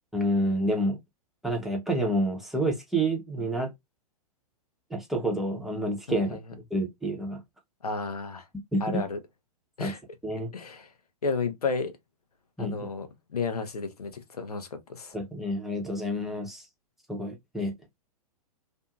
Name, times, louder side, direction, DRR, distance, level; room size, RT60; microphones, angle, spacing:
voice 1, 0.1-1.0 1.4-3.7 4.9-6.4 6.7-7.4 8.7-9.0 9.8-9.9 10.2-10.5 12.6-12.8 15.1-16.6 17.1-17.7, right 1 dB, ahead, 0.8 m, -28 dB
voice 2, 6.1-6.4 7.8-8.5 8.8-9.2 9.8-10.0 10.5-10.9 11.2-11.9 12.6-15.2, left 4 dB, 80° left, 0.8 m, -32 dB
2.6 x 2.6 x 2.3 m
figure-of-eight pair, 110°, 19 cm